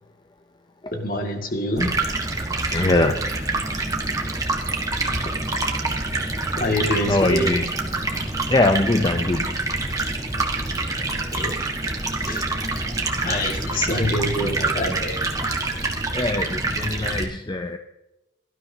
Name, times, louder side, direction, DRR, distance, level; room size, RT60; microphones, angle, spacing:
voice 1, 0.9-2.3 6.6-7.5 11.3-11.7 12.3-12.5 13.2-15.2, left 1 dB, 50° left, 3 dB, 2.1 m, -26 dB
Stream, 1.8-17.2, right 2 dB, 20° right, 1.5 m, -26 dB
voice 2, 2.7-3.7 7.0-7.9 8.5-9.6 13.3-14.6 16.1-17.8, left 2 dB, 25° left, 6 dB, 0.6 m, -23 dB
18.0 x 12.5 x 2.8 m, 0.96 s
head